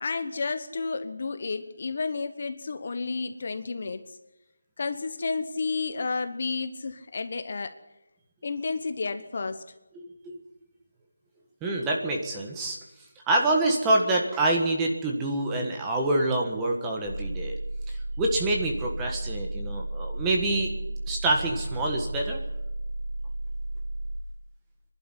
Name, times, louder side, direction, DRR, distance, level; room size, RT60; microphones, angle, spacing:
voice 1, 0.0-4.0 4.8-7.7 8.4-9.6, left 4 dB, 40° left, 9 dB, 1.1 m, -31 dB
voice 2, 9.9-10.4 11.6-12.8 13.3-17.5 17.9-20.7 21.0-22.4, right 2 dB, 10° right, 0 dB, 1.6 m, -26 dB
sound 1, 17.0-24.2, right 1 dB, 15° left, 4.6 m, -33 dB
24.5 x 11.5 x 9.9 m, 0.99 s
figure-of-eight pair, 175°, 0 cm